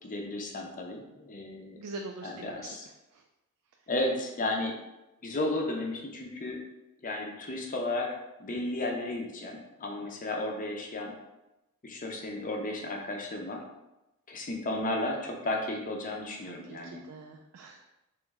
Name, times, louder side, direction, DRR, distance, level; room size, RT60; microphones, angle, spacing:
voice 1, 0.0-1.8 2.2-2.9 3.9-4.8 5.2-6.6 7.0-11.1 11.8-13.6 14.3-17.0, left 2 dB, 40° left, 1 dB, 0.6 m, -33 dB
voice 2, 1.8-2.7 3.1-3.2 16.4-17.9, right 3 dB, 75° right, 3 dB, 0.3 m, -44 dB
3.1 x 3.0 x 3.5 m, 0.97 s
head